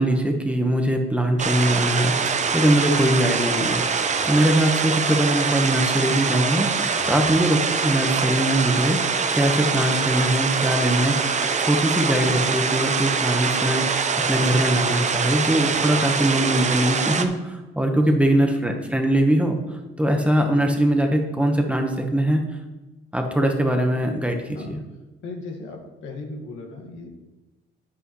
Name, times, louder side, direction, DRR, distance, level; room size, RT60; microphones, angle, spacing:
voice 1, 0.0-3.8 4.3-9.0 9.3-22.5 23.1-24.6, right 1 dB, 5° right, 3 dB, 1.2 m, -22 dB
sound 1, 1.4-17.3, right 5 dB, 35° right, 0.7 m, -24 dB
voice 2, 4.0-4.3 6.9-7.2 24.5-24.8 25.2-27.1, left 2 dB, 80° left, 0 dB, 1.8 m, -38 dB
9.1 x 8.4 x 3.2 m, 1.1 s
cardioid pair, 90°, 20 cm